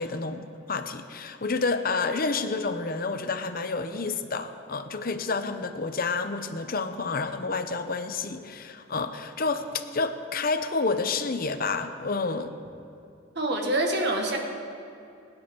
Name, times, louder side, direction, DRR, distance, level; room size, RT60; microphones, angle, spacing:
voice 1, 0.0-12.5, left 4 dB, 50° left, 9 dB, 0.7 m, -29 dB
voice 2, 13.3-14.4, right 1 dB, 60° right, 1 dB, 1.7 m, -26 dB
20.0 x 10.5 x 3.8 m, 2.5 s
head